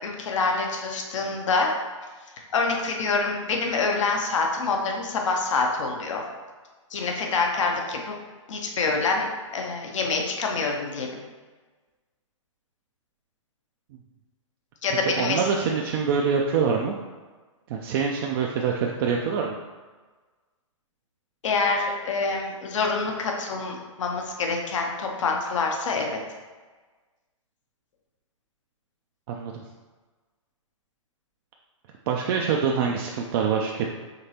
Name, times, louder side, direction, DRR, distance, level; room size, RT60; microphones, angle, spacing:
voice 1, 0.0-1.7 2.4-6.2 6.9-8.1 8.5-9.3 9.5-11.2 14.8-15.4 21.4-26.2, left 4 dB, 70° left, 1 dB, 0.8 m, -26 dB
voice 2, 14.9-17.0 17.7-19.6 29.3-29.6 32.1-34.0, right 6 dB, 45° right, 0 dB, 0.4 m, -25 dB
5.2 x 3.1 x 2.8 m, 1.3 s
hypercardioid pair, 125°, 17 cm